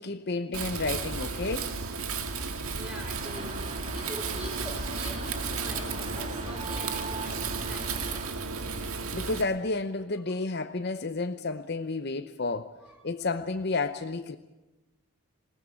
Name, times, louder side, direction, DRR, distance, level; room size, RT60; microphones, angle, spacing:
voice 1, 0.0-1.7 8.7-12.7 13.0-14.4, left 3 dB, 50° left, 0.7 m, -31 dB
Wind, 0.5-9.4, right 4 dB, 85° right, 1.9 m, -34 dB
voice 2, 2.3-8.2 12.8-13.0, equal, 5° right, 4.6 m, -44 dB
sound 1, 3.1-8.3, right 2 dB, 30° right, 2.1 m, -40 dB
21.0 x 19.0 x 8.8 m
head